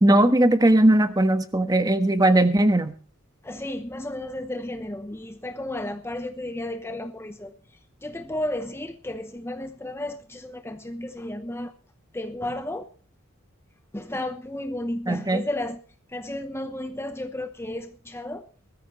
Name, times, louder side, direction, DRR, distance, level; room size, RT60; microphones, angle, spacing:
voice 1, 0.0-3.0 15.1-15.5, right 1 dB, 20° right, 1.3 m, -19 dB
voice 2, 3.4-11.8 12.1-12.9 13.9-15.8 16.1-18.5, left 1 dB, 10° left, 0.8 m, -33 dB
20.5 x 13.5 x 3.1 m
head